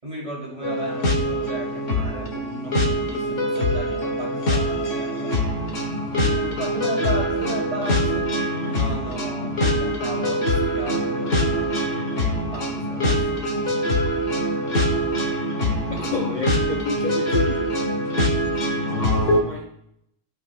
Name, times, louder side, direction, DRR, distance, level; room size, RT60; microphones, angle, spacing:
voice 1, 0.0-5.4 6.3-8.4 8.6-13.7 18.1-18.3, right 1 dB, 30° right, -5 dB, 4.0 m, -35 dB
sound 1, 0.6-19.4, equal, 75° left, 1.8 m, -23 dB
voice 2, 15.9-17.7 19.3-19.7, left 3 dB, 40° left, 1 dB, 0.8 m, -29 dB
15.0 x 5.5 x 2.6 m, 0.75 s
omnidirectional pair, 1.3 m